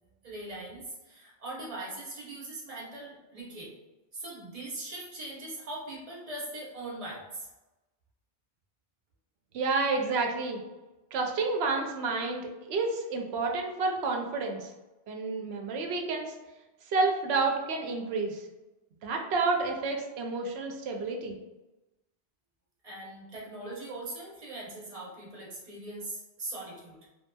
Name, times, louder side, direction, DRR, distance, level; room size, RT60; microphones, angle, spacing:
voice 1, 0.2-3.7 4.1-7.5 22.8-27.0, right 2 dB, 35° right, -4 dB, 0.8 m, -41 dB
voice 2, 9.5-10.6 11.1-14.7 15.1-16.4 16.9-18.4 19.0-21.3, right 3 dB, 70° right, 2 dB, 0.8 m, -30 dB
3.0 x 2.7 x 2.2 m, 1.0 s
omnidirectional pair, 1.2 m